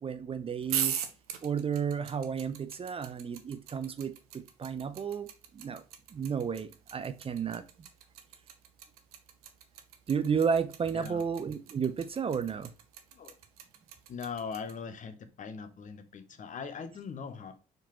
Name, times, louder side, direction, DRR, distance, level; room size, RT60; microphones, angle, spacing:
voice 1, 0.0-1.0 1.4-5.3 5.5-5.8 6.1-7.9 10.1-12.7, right 6 dB, 30° right, 0.5 m, -32 dB
sound 1, 0.6-14.7, right 9 dB, 85° right, 0.6 m, -39 dB
voice 2, 14.1-17.5, left 5 dB, 45° left, 0.9 m, -40 dB
4.5 x 3.8 x 2.9 m
hypercardioid pair, 50°, 18 cm